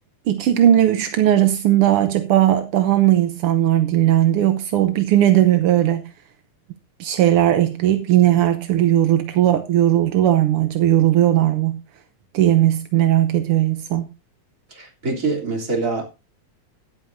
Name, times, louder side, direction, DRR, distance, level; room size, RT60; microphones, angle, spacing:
voice 1, 0.3-6.0 7.0-11.8 12.3-14.1, right 12 dB, 75° right, 1.3 m, -17 dB
voice 2, 14.7-16.0, right 3 dB, 25° right, 3.4 m, -24 dB
15.5 x 11.0 x 2.7 m
omnidirectional pair, 3.5 m